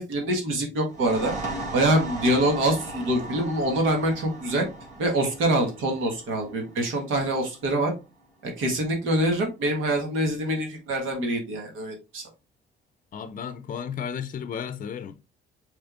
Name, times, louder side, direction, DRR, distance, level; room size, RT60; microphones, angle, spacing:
voice 1, 0.0-1.3 1.7-4.7 5.0-7.9 8.4-12.2, right 1 dB, 85° right, 1.5 m, -25 dB
sound 1, 0.8-8.2, right 2 dB, 40° right, 2.4 m, -38 dB
voice 2, 13.1-15.2, left 7 dB, 45° left, 0.5 m, -33 dB
6.2 x 3.4 x 2.5 m
cardioid pair, 90°, 20 cm